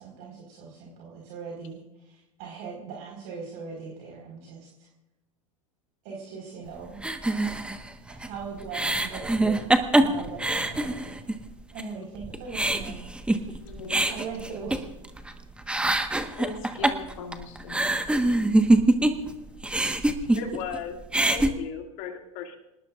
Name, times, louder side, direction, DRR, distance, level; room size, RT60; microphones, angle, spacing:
voice 1, 0.0-4.9 6.0-7.0 8.1-9.6 10.0-11.2 11.7-13.1 13.9-14.8, right 5 dB, 55° right, -1 dB, 4.8 m, -40 dB
sound 1, 7.0-11.4 11.8-11.9 12.2-15.3 15.6-19.3 19.6-20.8 21.0-21.5, right 2 dB, 5° right, 1.4 m, -24 dB
voice 2, 13.6-14.2 16.4-18.0, left 5 dB, 70° left, 4 dB, 3.8 m, -40 dB
voice 3, 20.3-20.9 21.3-22.6, left 7 dB, 50° left, 4 dB, 2.5 m, -36 dB
26.5 x 19.5 x 2.5 m, 0.93 s
hypercardioid pair, 85°, 18 cm